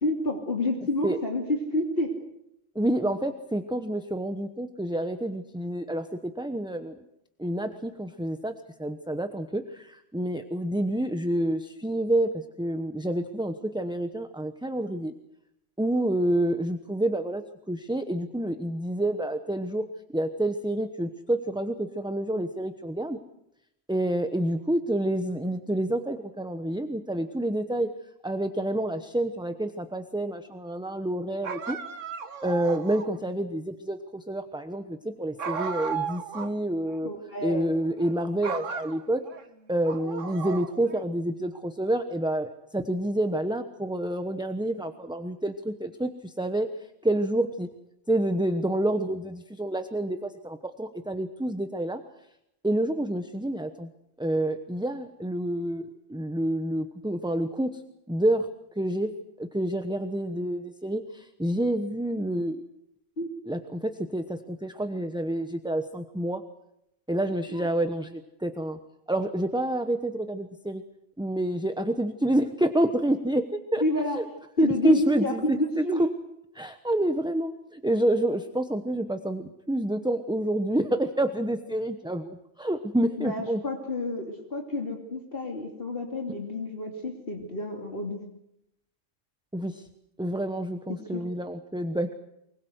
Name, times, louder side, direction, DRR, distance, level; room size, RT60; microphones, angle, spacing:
voice 1, 0.0-2.1 36.4-36.6 37.0-37.7 63.2-63.3 67.5-67.7 73.8-74.2 74.6-76.0 83.2-88.2 90.9-91.2, left 1 dB, 50° left, 1 dB, 3.0 m, -29 dB
voice 2, 2.7-7.0 7.4-8.5 8.8-15.1 15.8-19.8 20.1-23.2 23.9-27.9 28.2-31.8 32.4-37.1 37.4-39.2 39.7-46.7 47.0-47.7 48.1-52.0 52.6-53.9 54.2-57.8 58.1-58.5 58.8-59.1 59.4-62.6 63.5-66.4 67.1-68.8 69.1-70.8 71.2-73.8 74.2-74.3 74.6-75.8 76.5-83.6 89.5-89.8 90.2-92.1, right 1 dB, 5° right, 8 dB, 0.9 m, -28 dB
sound 1, 31.4-33.2 35.4-36.6 36.9-37.0 37.8-38.1 38.4-39.4 39.8-41.0, right 6 dB, 80° right, 1.6 m, -35 dB
24.0 x 21.5 x 8.0 m, 0.82 s
omnidirectional pair, 1.3 m